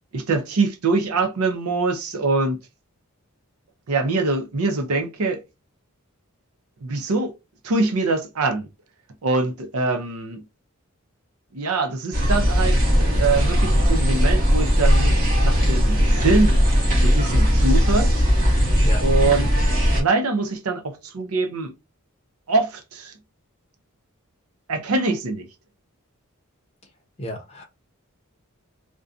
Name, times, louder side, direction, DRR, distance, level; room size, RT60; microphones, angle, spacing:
voice 1, 0.1-2.6 3.9-5.4 6.8-7.3 7.6-8.7 9.2-10.4 11.5-15.2 15.4-16.6 17.0-18.1 19.0-19.5 20.0-21.7 22.5-23.1 24.7-25.5, right 3 dB, 80° right, 0.6 m, -23 dB
sound 1, 12.1-20.0, equal, 40° right, 1.0 m, -18 dB
voice 2, 27.2-27.6, left 1 dB, 30° left, 0.7 m, -32 dB
2.5 x 2.2 x 2.4 m
head